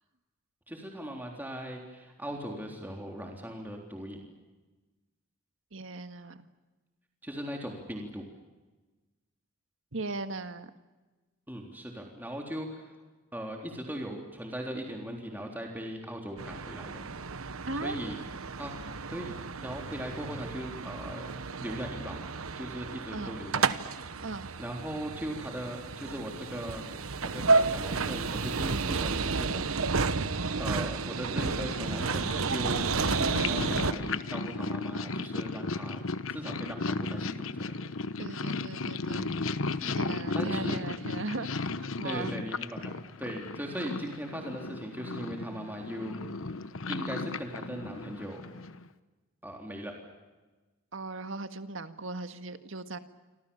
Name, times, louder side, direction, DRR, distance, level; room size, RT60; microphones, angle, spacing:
voice 1, 0.7-4.2 7.2-8.2 11.5-12.9 13.3-17.1 17.8-18.2 18.6-18.8 19.1-19.3 19.6-23.9 24.6-26.9 27.2-30.3 30.6-36.0 36.3-37.9 39.8-40.1 40.3-40.8 42.0-46.2 46.9-48.5 49.4-49.9, equal, 10° right, 1 dB, 3.7 m, -39 dB
voice 2, 5.7-6.5 9.9-10.7 17.7-18.0 23.1-23.4 24.2-24.5 38.2-39.3 39.9-41.7 42.0-42.3 50.9-53.0, right 3 dB, 65° right, 9 dB, 1.8 m, -38 dB
sound 1, 16.4-33.9, right 4 dB, 85° right, 1.1 m, -31 dB
Purr, 31.2-48.9, left 3 dB, 70° left, 1.1 m, -35 dB
29.0 x 25.5 x 7.2 m, 1.2 s
head